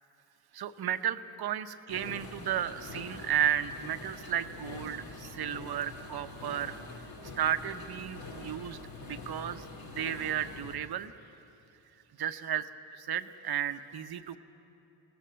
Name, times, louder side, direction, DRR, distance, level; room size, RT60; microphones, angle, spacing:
voice 1, 0.5-6.8 7.4-9.7 10.0-11.1 12.2-14.4, right 10 dB, 55° right, 10 dB, 1.0 m, -33 dB
sound 1, 1.9-10.8, left 3 dB, 55° left, 2.8 m, -45 dB
22.5 x 19.5 x 7.6 m, 2.9 s
cardioid pair, 85°, 45 cm